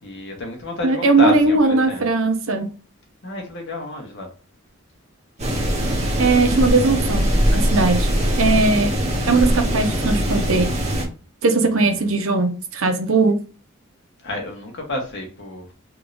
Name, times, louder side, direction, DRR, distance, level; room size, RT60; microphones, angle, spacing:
voice 1, 0.0-1.6 1.9-2.0 3.2-4.3 14.2-15.8, left 2 dB, 60° left, 1.2 m, -29 dB
voice 2, 0.8-2.7 6.2-8.1 8.4-8.9 9.3-10.7 11.4-13.4, right 3 dB, 75° right, 0.8 m, -19 dB
sound 1, 5.4-11.0, equal, 35° right, 1.1 m, -21 dB
3.6 x 3.2 x 2.6 m
head